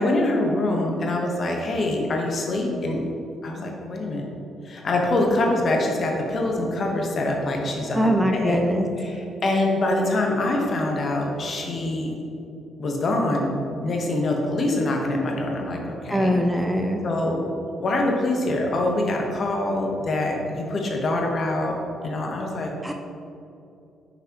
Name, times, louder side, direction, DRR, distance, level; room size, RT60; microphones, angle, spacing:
voice 1, 0.0-3.0 3.4-4.3 4.6-8.6 9.0-12.2 12.8-13.5 13.8-16.4 17.0-17.4 17.8-21.7 22.0-22.7, left 2 dB, 50° left, 1 dB, 1.0 m, -24 dB
voice 2, 7.9-8.9 16.1-17.1 22.8-22.9, equal, 10° right, 3 dB, 0.4 m, -22 dB
5.9 x 5.5 x 2.9 m, 2.7 s
cardioid pair, 90°, 0 cm